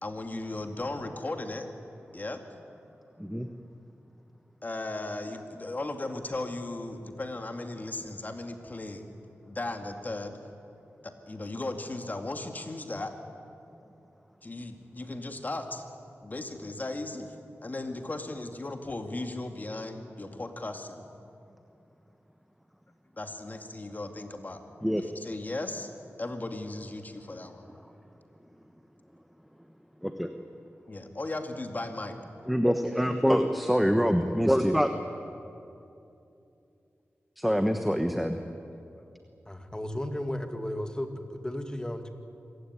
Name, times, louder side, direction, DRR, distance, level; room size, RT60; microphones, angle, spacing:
voice 1, 0.0-1.7 2.1-2.4 4.6-9.1 9.5-10.4 11.0-13.2 14.4-15.8 16.2-17.4 17.6-21.0 23.2-24.6 25.0-25.9 26.2-27.7 30.9-32.2 35.8-35.9 38.7-38.8, left 2 dB, 40° left, 5 dB, 2.3 m, -36 dB
voice 2, 30.0-30.3 32.5-34.9 37.4-38.4, equal, ahead, 7 dB, 1.2 m, -25 dB
voice 3, 39.5-42.1, left 1 dB, 15° left, 6 dB, 2.1 m, -34 dB
26.0 x 15.5 x 9.7 m, 2.7 s
wide cardioid pair, 70°, 5 cm